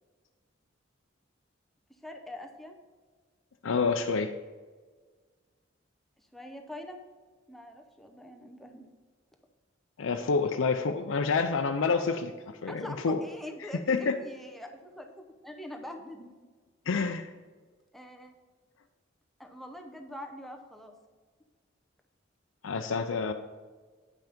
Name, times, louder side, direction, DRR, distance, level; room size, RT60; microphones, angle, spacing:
voice 1, 2.0-2.8 6.3-7.1 7.5-8.9 12.7-16.3 17.9-18.3 19.4-20.9, left 1 dB, ahead, 3 dB, 0.7 m, -44 dB
voice 2, 3.6-4.3 10.0-13.2 13.9-14.2 16.9-17.3 22.6-23.3, left 4 dB, 90° left, 6 dB, 0.5 m, -28 dB
9.1 x 5.8 x 5.1 m, 1.5 s
head